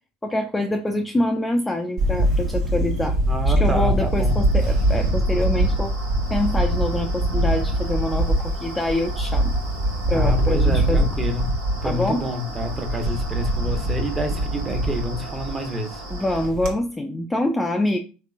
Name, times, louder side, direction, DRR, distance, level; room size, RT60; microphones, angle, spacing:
voice 1, 0.2-3.2 3.6-5.9 6.3-9.6 10.1-11.1 11.8-12.2 16.1-18.0, left 1 dB, 10° left, 5 dB, 0.3 m, -25 dB
Camera, 2.0-16.7, right 1 dB, 55° right, 0.7 m, -23 dB
voice 2, 3.3-4.4 10.1-11.5 11.8-16.0, left 1 dB, 20° right, 4 dB, 0.8 m, -28 dB
sound 1, 3.9-16.5, right 1 dB, 85° right, 0.9 m, -39 dB
3.3 x 2.8 x 2.4 m, 0.34 s
figure-of-eight pair, 75°, 0 cm